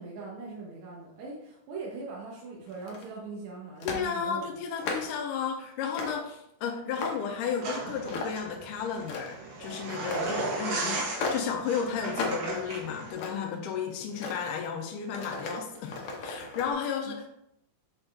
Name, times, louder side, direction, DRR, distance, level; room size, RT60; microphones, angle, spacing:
voice 1, 0.0-4.5 17.1-17.2, right 4 dB, 70° right, -3 dB, 2.2 m, -41 dB
sound 1, 2.7-3.2 3.8-4.1 4.6-5.2 5.9-6.2 6.7-7.4 8.1-8.5 8.9-9.5 10.0-10.3 11.1-11.5 12.1-12.5 12.9-13.6 14.1-14.4 15.0-16.7, left 3 dB, 65° left, 1.4 m, -36 dB
voice 2, 3.8-17.3, left 7 dB, 85° left, 2 dB, 2.2 m, -33 dB
sound 2, 7.6-13.1, right 2 dB, 85° right, 3.3 m, -35 dB
7.4 x 4.4 x 3.3 m, 0.78 s
omnidirectional pair, 3.7 m